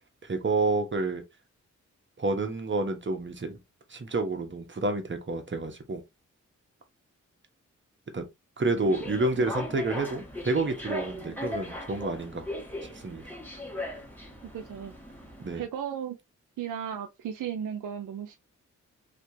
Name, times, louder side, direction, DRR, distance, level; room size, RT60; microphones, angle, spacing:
voice 1, 0.2-1.2 2.2-3.6 3.9-6.0 8.1-8.3 8.6-12.5 12.8-13.2 15.4-15.6, right 2 dB, 40° right, 1.1 m, -29 dB
sound 1, 8.7-15.6, left 1 dB, 5° left, 1.7 m, -38 dB
voice 2, 14.5-15.0 15.5-16.2 16.6-18.4, right 8 dB, 80° right, 0.5 m, -35 dB
3.2 x 2.9 x 2.7 m
cardioid pair, 45°, 31 cm